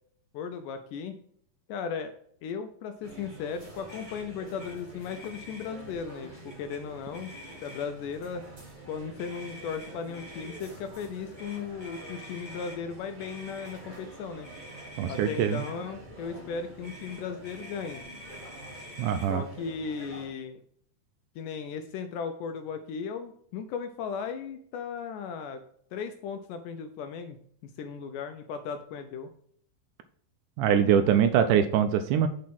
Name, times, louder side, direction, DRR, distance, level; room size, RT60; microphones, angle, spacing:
voice 1, 0.3-1.2 1.7-2.1 2.4-7.3 7.6-8.4 8.9-14.5 15.1-18.0 19.3-20.6 21.4-25.6 25.9-27.4 27.6-29.3, left 6 dB, 80° left, 7 dB, 2.0 m, -36 dB
sound 1, 3.0-20.3, right 2 dB, 45° right, 0.5 m, -47 dB
Motor vehicle (road), 3.9-4.3 4.6-4.8 5.0-5.7 6.5-6.8 7.1-8.0 9.2-10.6 11.4-12.8 13.2-13.8 14.4-15.7 16.8-19.3, left 1 dB, 15° left, 1.8 m, -47 dB
voice 2, 15.0-15.6 19.0-19.4 30.6-32.3, right 9 dB, 85° right, 9 dB, 1.8 m, -23 dB
7.5 x 4.1 x 5.8 m, 0.64 s
omnidirectional pair, 4.1 m